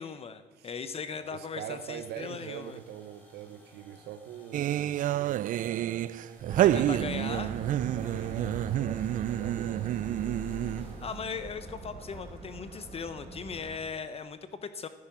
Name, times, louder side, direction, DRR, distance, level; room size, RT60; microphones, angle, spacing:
voice 1, 0.0-2.8 6.6-7.5 10.8-14.9, left 6 dB, 35° left, 12 dB, 0.8 m, -38 dB
sound 1, 1.1-11.3, equal, 10° left, 4.7 m, -56 dB
voice 2, 1.3-6.2 7.6-10.1, right 10 dB, 75° right, 10 dB, 0.8 m, -43 dB
sound 2, 4.5-11.0, right 13 dB, 55° right, 0.4 m, -29 dB
sound 3, 6.5-13.8, right 2 dB, 35° right, 5.3 m, -42 dB
14.0 x 12.5 x 6.0 m, 1.2 s
cardioid pair, 110°, 17 cm